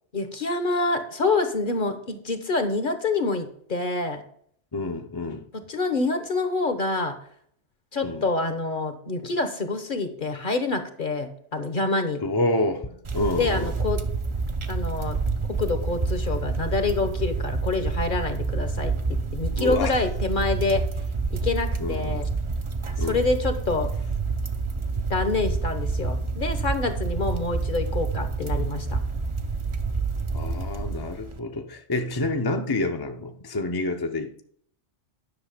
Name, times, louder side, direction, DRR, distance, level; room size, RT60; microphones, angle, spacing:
voice 1, 0.1-4.2 5.7-7.2 7.9-12.2 13.4-14.0 14.7-15.2 15.6-20.8 21.3-22.3 23.0-23.9 25.1-29.0, left 3 dB, 45° left, 1.1 m, -27 dB
voice 2, 4.7-5.4 8.0-8.3 12.2-13.7 19.6-19.9 21.8-22.2 23.0-23.2 30.3-34.4, left 2 dB, 25° left, 0.7 m, -28 dB
sound 1, 13.0-31.4, right 4 dB, 30° right, 0.7 m, -28 dB
10.5 x 6.3 x 5.1 m
omnidirectional pair, 1.2 m